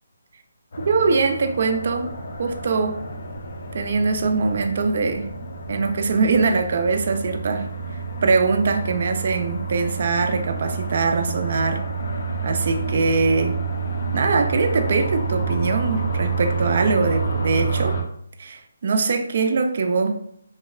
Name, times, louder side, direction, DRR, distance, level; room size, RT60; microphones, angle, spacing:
sound 1, 0.7-18.0, right 4 dB, 55° left, 0.4 m, -28 dB
voice 1, 0.9-2.1 2.4-3.0 3.7-5.3 5.7-7.7 8.2-11.8 12.4-13.6 14.1-18.0 18.4-20.2, right 4 dB, 50° right, 6 dB, 0.3 m, -22 dB
2.7 x 2.1 x 2.3 m, 0.70 s
hypercardioid pair, 160°, 0 cm